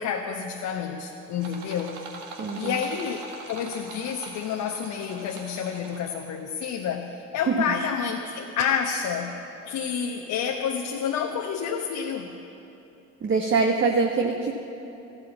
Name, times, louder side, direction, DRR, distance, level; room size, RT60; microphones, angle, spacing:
voice 1, 0.0-2.0 2.5-9.4 9.7-12.3, left 7 dB, 50° left, 2 dB, 1.1 m, -29 dB
sound 1, 1.4-6.3, right 4 dB, 75° right, 1.7 m, -43 dB
voice 2, 2.4-2.7 7.5-7.6 13.2-14.5, right 4 dB, 30° right, 2 dB, 1.2 m, -23 dB
14.5 x 12.0 x 7.2 m, 2.9 s
figure-of-eight pair, 55°, 37 cm